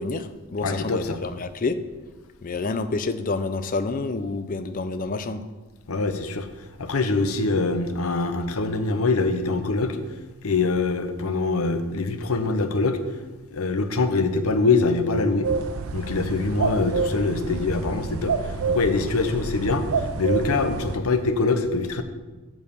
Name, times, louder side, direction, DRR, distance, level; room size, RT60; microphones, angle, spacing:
voice 1, 0.0-1.8 2.4-5.4, left 3 dB, 35° left, 11 dB, 0.4 m, -28 dB
voice 2, 0.6-1.2 5.9-6.5 6.8-10.0 10.4-13.0 13.5-15.5 15.9-22.0, left 3 dB, 75° left, 8 dB, 0.8 m, -24 dB
sound 1, 15.4-21.0, right 5 dB, 70° right, 0.5 m, -28 dB
8.0 x 4.8 x 6.8 m, 1.3 s
head